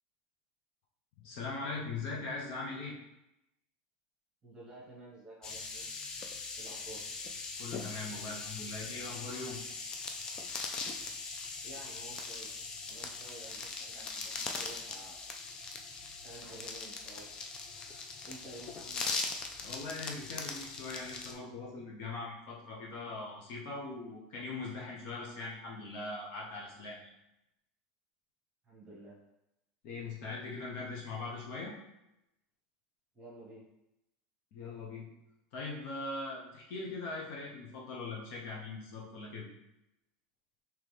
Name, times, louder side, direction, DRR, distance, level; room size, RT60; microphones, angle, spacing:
voice 1, 1.2-3.0 7.6-9.6 17.8-17.9 19.6-27.1 29.8-31.7 34.5-35.1 35.5-39.5, left 3 dB, 45° left, -3 dB, 0.8 m, -41 dB
voice 2, 4.4-5.9 6.5-7.0 11.6-15.2 16.2-17.3 18.2-19.2 28.6-29.2 33.1-33.6, right 1 dB, 15° right, -6 dB, 1.3 m, -51 dB
sound 1, 5.4-21.3, left 4 dB, 20° left, 0.3 m, -41 dB
3.8 x 3.0 x 3.3 m, 0.89 s
supercardioid pair, 175°, 4 cm